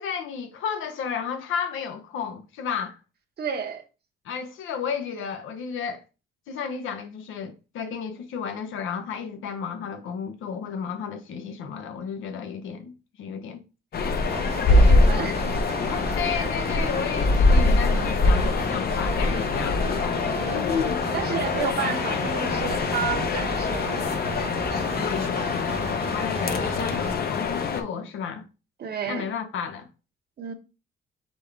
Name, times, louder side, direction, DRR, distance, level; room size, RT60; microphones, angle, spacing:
voice 1, 0.0-3.0 4.2-6.0 6.5-12.9 13.2-13.6 14.4-15.4 15.8-21.0 25.0-28.4 29.1-29.9, left 7 dB, 80° left, 0.8 m, -33 dB
voice 2, 3.4-3.8 14.7-15.4 20.3-20.7 21.1-24.0 28.8-29.3 30.4-30.5, right 6 dB, 55° right, 1.0 m, -31 dB
sound 1, 13.9-27.8, left 3 dB, 50° left, 0.7 m, -23 dB
sound 2, 14.3-27.1, right 5 dB, 30° right, 0.4 m, -37 dB
4.3 x 3.4 x 3.3 m
cardioid pair, 90°, 20 cm